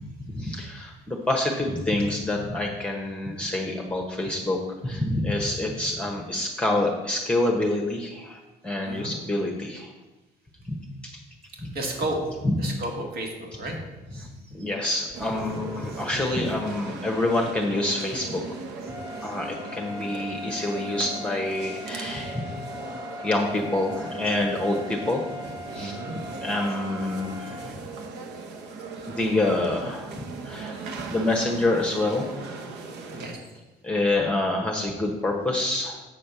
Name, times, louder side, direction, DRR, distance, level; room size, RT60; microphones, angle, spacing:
voice 1, 0.2-4.6 4.8-9.9 10.6-10.8 11.0-11.1 11.6-11.7 12.4-12.5 14.1-18.4 19.2-22.4 23.2-25.3 25.7-25.9 26.4-27.8 29.1-30.8 31.1-32.7 33.8-36.0, left 2 dB, 5° left, 0 dB, 1.0 m, -27 dB
voice 2, 11.7-12.2 12.6-13.7 14.1-14.2 15.3-15.6 19.2-19.3 25.8-26.2 33.1-33.4, right 1 dB, 65° right, 1 dB, 2.0 m, -33 dB
sound 1, 15.1-33.3, right 4 dB, 85° right, 1.0 m, -39 dB
sound 2, 18.8-27.7, left 2 dB, 20° right, 1.0 m, -40 dB
7.7 x 4.3 x 6.7 m, 1.1 s
cardioid pair, 110°, 17 cm